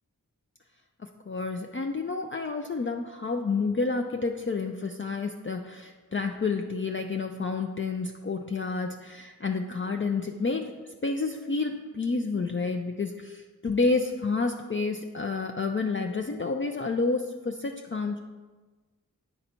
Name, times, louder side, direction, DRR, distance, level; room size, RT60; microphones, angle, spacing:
voice 1, 1.3-18.2, left 4 dB, 35° left, 3 dB, 0.4 m, -29 dB
8.9 x 4.0 x 4.3 m, 1.3 s
wide cardioid pair, 50°, 37 cm